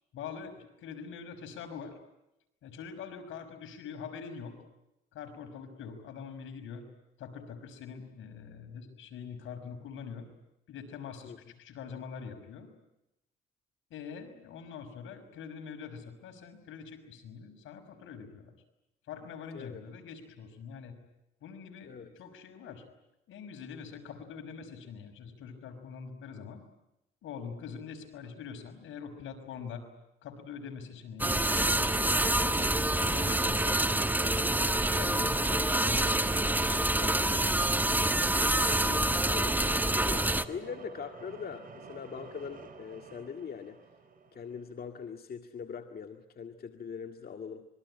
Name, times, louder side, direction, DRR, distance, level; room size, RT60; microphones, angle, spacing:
voice 1, 0.1-1.9 2.6-4.5 5.1-6.9 7.2-10.3 10.7-12.7 13.9-18.5 19.1-20.9 21.4-22.8 23.3-26.6 27.2-29.8 30.2-34.5 34.9-36.5 36.7-37.9 38.8-39.1, left 6 dB, 80° left, 6 dB, 5.8 m, -44 dB
sound 1, 31.2-40.4, right 1 dB, 10° right, 1.4 m, -27 dB
sound 2, 37.0-44.7, right 4 dB, 45° right, 5.7 m, -51 dB
voice 2, 39.2-43.8 44.3-47.7, left 6 dB, 50° left, 5 dB, 2.0 m, -42 dB
26.5 x 23.0 x 9.9 m, 0.88 s
cardioid pair, 90°, 20 cm